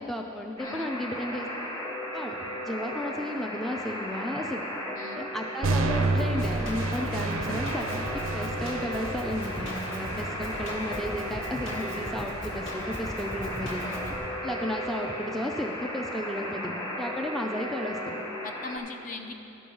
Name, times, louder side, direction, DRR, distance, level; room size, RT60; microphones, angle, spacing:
voice 1, 0.0-1.5 2.1-4.7 5.2-13.9 14.4-18.0, left 1 dB, ahead, 1 dB, 0.4 m, -33 dB
voice 2, 0.6-0.9 5.0-5.3 13.8-14.2 18.4-19.3, left 3 dB, 40° left, 5 dB, 0.7 m, -40 dB
Alarm, 0.6-18.8, equal, 15° left, 1.2 m, -36 dB
sound 1, 5.6-13.6, right 3 dB, 80° right, 0.5 m, -32 dB
Drum kit, 6.2-14.2, equal, 75° left, 1.9 m, -39 dB
12.5 x 5.4 x 6.1 m, 2.9 s
head